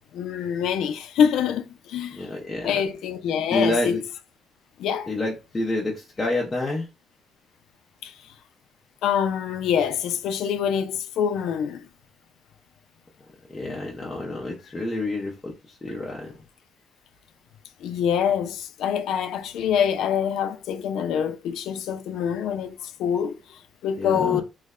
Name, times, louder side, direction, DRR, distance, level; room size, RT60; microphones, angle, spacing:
voice 1, 0.1-2.2 2.6-4.0 4.8-5.1 8.0-8.1 9.0-11.9 17.8-24.4, left 8 dB, 85° left, 0.4 m, -25 dB
voice 2, 2.1-2.8 3.5-4.0 5.1-6.9 13.5-16.3 24.0-24.4, left 2 dB, 20° left, 0.6 m, -28 dB
3.1 x 2.1 x 3.6 m
cardioid pair, 170°, 0 cm